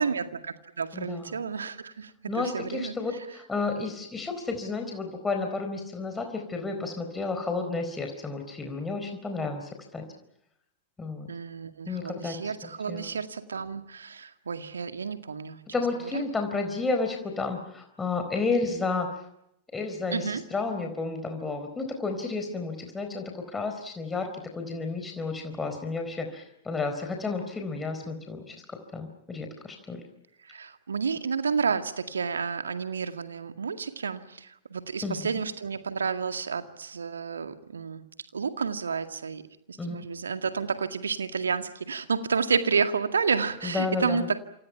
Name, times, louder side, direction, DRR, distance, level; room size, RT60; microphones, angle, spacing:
voice 1, 0.0-3.0 11.3-15.6 16.0-16.2 20.1-20.4 30.4-38.0 38.3-39.4 39.7-44.4, right 5 dB, 70° right, 9 dB, 2.0 m, -30 dB
voice 2, 0.9-1.3 2.3-10.0 11.0-11.3 11.9-13.1 15.7-19.1 19.7-30.0 35.0-35.2 39.8-40.0 43.6-44.3, left 3 dB, 15° left, 4 dB, 4.3 m, -32 dB
28.0 x 27.5 x 5.9 m, 0.79 s
figure-of-eight pair, 90°, 0 cm